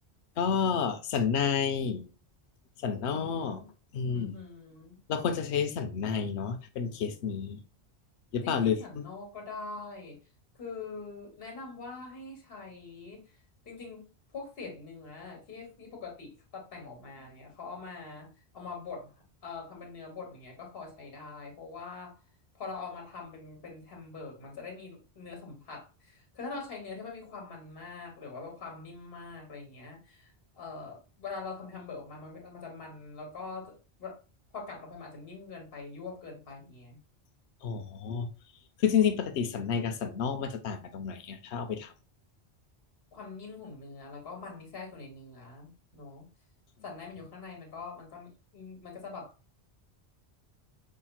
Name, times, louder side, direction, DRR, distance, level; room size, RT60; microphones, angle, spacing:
voice 1, 0.4-2.0 2.8-3.6 3.9-4.4 5.1-7.6 8.3-9.0 37.6-38.3 38.8-41.9, left 7 dB, 80° left, 1.0 m, -30 dB
voice 2, 2.8-3.7 4.1-5.0 8.4-10.2 10.6-13.4 13.6-14.0 14.3-19.1 19.4-22.2 22.5-34.2 34.5-37.0 43.1-46.3 46.8-49.3, left 4 dB, 60° left, 1.6 m, -43 dB
5.6 x 3.6 x 2.3 m
omnidirectional pair, 1.1 m